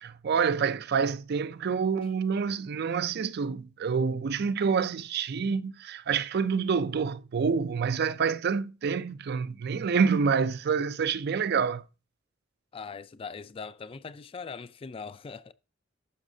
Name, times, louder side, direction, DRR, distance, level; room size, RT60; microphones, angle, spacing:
voice 1, 0.0-11.9, right 6 dB, 55° right, 0.4 m, -27 dB
voice 2, 12.7-15.5, left 5 dB, 30° left, 0.3 m, -41 dB
11.0 x 6.2 x 2.7 m
head